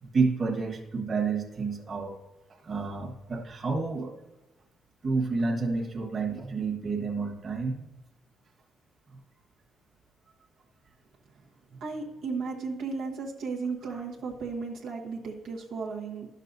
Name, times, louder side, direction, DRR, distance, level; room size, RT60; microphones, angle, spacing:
voice 1, 0.0-2.2 2.6-4.1 5.0-7.8, right 4 dB, 45° right, 1 dB, 1.4 m, -29 dB
voice 2, 11.4-16.3, right 4 dB, 85° right, -2 dB, 1.1 m, -35 dB
11.0 x 6.5 x 2.7 m, 1.1 s
cardioid pair, 90°, 0 cm